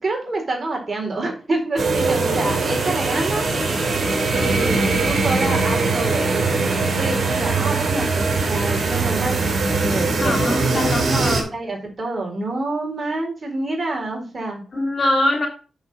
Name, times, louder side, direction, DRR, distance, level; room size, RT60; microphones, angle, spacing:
voice 1, 0.0-3.5 4.3-6.6 7.0-9.4 9.8-10.9 11.2-14.6, right 2 dB, 50° right, 1 dB, 4.0 m, -27 dB
sound 1, 1.8-11.4, right 3 dB, 70° right, 2.8 m, -21 dB
voice 2, 10.2-11.5 14.7-15.5, left 1 dB, 60° left, 3 dB, 3.0 m, -23 dB
7.1 x 6.7 x 4.1 m, 0.35 s
cardioid pair, 45°, 0 cm